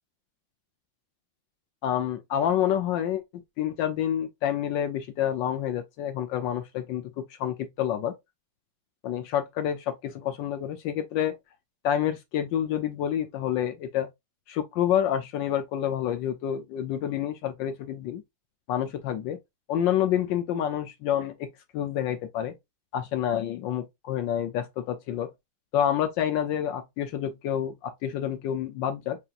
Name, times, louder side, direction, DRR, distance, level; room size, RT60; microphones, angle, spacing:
voice 1, 1.8-3.2 3.6-8.1 9.0-11.4 11.8-14.1 14.5-18.2 18.7-19.4 19.7-21.5 21.7-22.5 22.9-25.3 25.7-29.2, left 10 dB, 75° left, 1.3 m, -28 dB
6.8 x 2.9 x 2.4 m
omnidirectional pair, 2.1 m